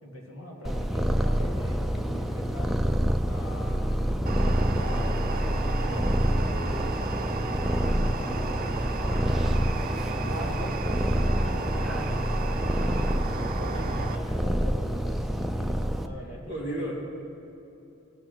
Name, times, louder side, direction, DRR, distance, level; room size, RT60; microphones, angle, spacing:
voice 1, 0.0-2.7 3.2-9.6 10.2-12.3 12.8-15.2 15.5-16.9, equal, 85° left, -1 dB, 2.3 m, -42 dB
Purr, 0.6-16.1, equal, ahead, 0.4 m, -27 dB
sound 1, 4.3-14.2, right 4 dB, 40° right, 0.6 m, -35 dB
voice 2, 13.7-14.2 16.5-16.9, right 1 dB, 55° left, -5 dB, 3.3 m, -34 dB
19.0 x 7.9 x 4.5 m, 2.9 s
head